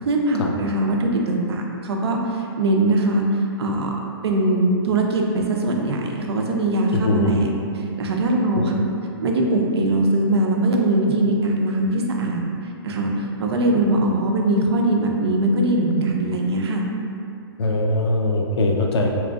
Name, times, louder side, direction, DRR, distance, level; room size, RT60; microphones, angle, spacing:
voice 1, 0.0-4.0 4.2-7.5 8.0-8.7 9.2-12.4 12.8-16.9, right 1 dB, 75° right, 1 dB, 0.5 m, -21 dB
voice 2, 6.9-7.3 8.5-8.7 17.6-19.1, left 2 dB, 80° left, 1 dB, 0.5 m, -21 dB
3.6 x 3.0 x 2.4 m, 2.6 s
hypercardioid pair, 170°, 13 cm